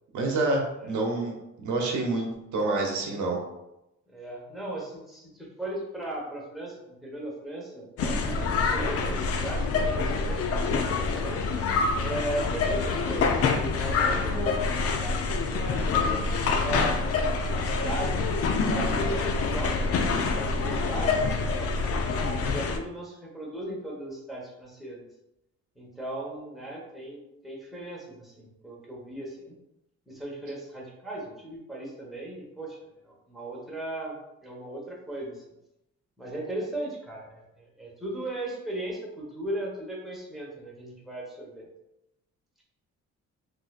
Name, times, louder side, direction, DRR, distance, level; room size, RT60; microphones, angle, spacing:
voice 1, 0.1-2.3 2.5-3.4, right 2 dB, 75° right, 0 dB, 0.9 m, -27 dB
voice 2, 4.1-11.4 12.0-17.0 17.5-18.2 18.5-21.9 22.5-25.1 25.8-29.6 30.1-32.8 33.0-35.4 36.2-41.7, right 1 dB, ahead, -4 dB, 1.1 m, -37 dB
sound 1, 8.0-22.8, left 4 dB, 50° left, 0.5 m, -26 dB
4.0 x 2.7 x 2.4 m, 0.89 s
cardioid pair, 90°, 30 cm